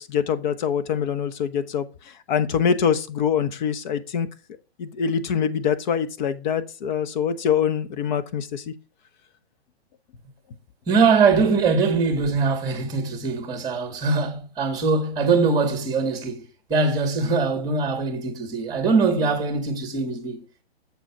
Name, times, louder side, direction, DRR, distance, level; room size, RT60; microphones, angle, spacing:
voice 1, 0.0-4.3 4.8-8.7, left 7 dB, 45° left, 0.8 m, -24 dB
voice 2, 10.9-20.4, right 4 dB, 10° right, 2.0 m, -22 dB
7.1 x 3.9 x 6.1 m
hypercardioid pair, 140°, 33 cm